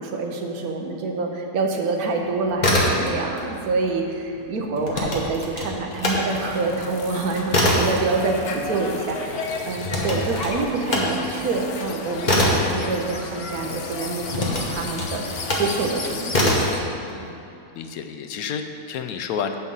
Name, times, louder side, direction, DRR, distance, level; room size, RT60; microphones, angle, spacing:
voice 1, 0.0-16.6, right 3 dB, 75° right, 2 dB, 1.4 m, -26 dB
sound 1, 2.4-3.4 3.7-6.2 6.6-13.6 14.3-15.7 16.3-16.8, left 1 dB, 30° left, 1.2 m, -24 dB
sound 2, 6.3-16.8, left 4 dB, 55° left, 0.8 m, -33 dB
voice 2, 17.7-19.6, left 7 dB, 75° left, 7 dB, 1.0 m, -30 dB
8.0 x 6.3 x 5.4 m, 2.7 s
omnidirectional pair, 1.6 m